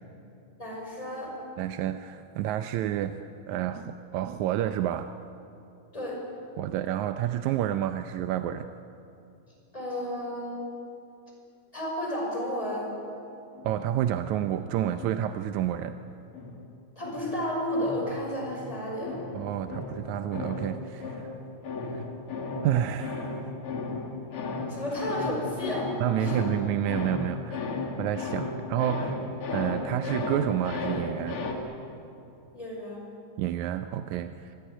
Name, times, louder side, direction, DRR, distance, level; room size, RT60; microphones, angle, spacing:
voice 1, 0.6-1.4 5.9-6.2 9.7-10.6 11.7-12.9 17.0-19.2 24.7-26.4 32.5-33.0, equal, 10° left, -2 dB, 5.7 m, -32 dB
voice 2, 1.6-5.1 6.6-8.7 13.6-16.0 19.3-21.3 21.9-22.0 22.6-23.5 26.0-27.6 28.0-29.2 29.5-31.4 33.4-34.6, right 11 dB, 75° right, 9 dB, 1.8 m, -29 dB
sound 1, 13.6-15.9 16.3-31.5, left 3 dB, 45° left, 2.7 m, -35 dB
24.0 x 17.5 x 9.9 m, 2.7 s
omnidirectional pair, 3.9 m